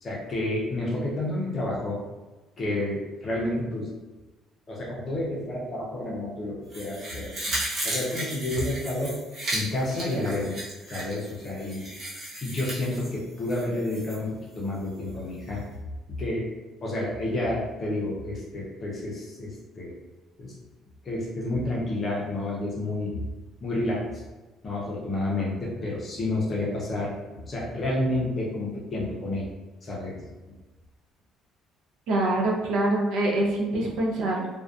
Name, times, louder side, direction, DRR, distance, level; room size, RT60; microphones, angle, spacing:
voice 1, 0.0-2.0 2.6-3.9 4.7-7.5 7.8-9.2 9.5-10.6 10.9-11.8 12.4-15.6 16.2-16.5 16.8-19.9 20.4-20.5 21.0-23.2 23.6-24.2 24.6-27.1 27.5-29.5 29.8-30.2, left 1 dB, 25° left, -4 dB, 0.5 m, -30 dB
sound 1, 6.7-14.2 14.5-14.6, right 1 dB, 30° right, 0.7 m, -35 dB
voice 2, 32.1-34.5, right 1 dB, 65° right, -2 dB, 0.5 m, -25 dB
2.5 x 2.2 x 2.4 m, 1.2 s
cardioid pair, 175°, 0 cm